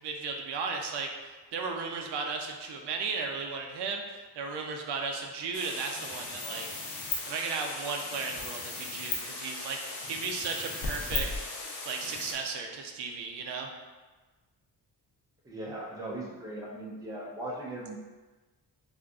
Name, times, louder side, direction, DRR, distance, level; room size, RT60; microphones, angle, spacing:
voice 1, 0.0-6.7 7.3-11.4 11.9-13.7, right 4 dB, 85° right, 3 dB, 0.5 m, -35 dB
sound 1, 5.5-12.3, left 3 dB, 90° left, 0.7 m, -37 dB
voice 2, 15.4-18.0, right 1 dB, 10° right, -3 dB, 0.3 m, -38 dB
3.7 x 2.5 x 2.3 m, 1.3 s
wide cardioid pair, 155°, 39 cm